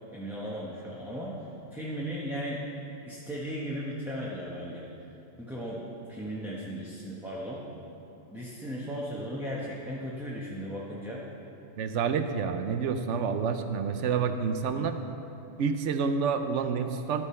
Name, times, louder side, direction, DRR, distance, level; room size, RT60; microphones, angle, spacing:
voice 1, 0.1-1.4 1.7-2.6 3.1-4.9 5.4-7.6 8.3-11.3, equal, ahead, -6 dB, 1.0 m, -36 dB
voice 2, 11.8-15.0 15.6-17.2, right 6 dB, 80° right, 8 dB, 1.0 m, -28 dB
12.0 x 9.0 x 4.3 m, 2.9 s
omnidirectional pair, 1.2 m